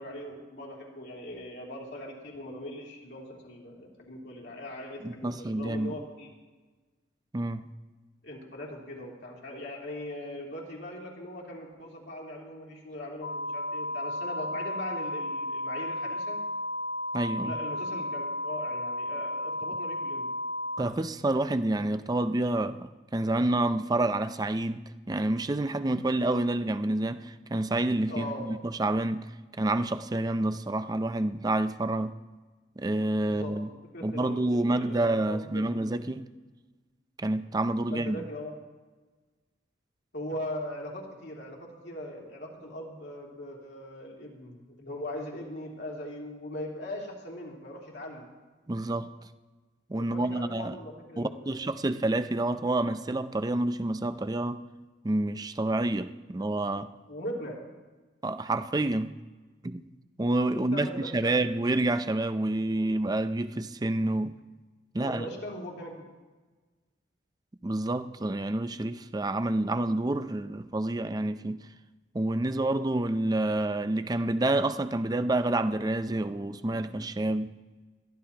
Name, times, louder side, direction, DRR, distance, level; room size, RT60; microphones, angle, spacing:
voice 1, 0.0-6.3 8.2-16.4 17.4-20.3 28.1-28.4 33.3-36.0 37.9-38.5 40.1-48.3 50.0-51.6 57.1-57.6 60.5-61.5 65.0-65.9, left 1 dB, 60° left, 2.9 m, -40 dB
voice 2, 5.0-5.9 7.3-7.6 17.1-17.6 20.8-29.3 29.6-32.1 32.8-33.7 34.0-36.2 37.2-38.2 48.7-49.1 49.9-50.8 51.2-54.6 55.0-56.9 58.2-59.1 59.6-59.9 60.2-64.4 64.9-65.2 67.6-71.6 72.1-77.5, right 2 dB, 20° right, 0.4 m, -28 dB
sound 1, 13.2-20.8, left 1 dB, 90° left, 0.7 m, -33 dB
21.5 x 14.0 x 2.9 m
head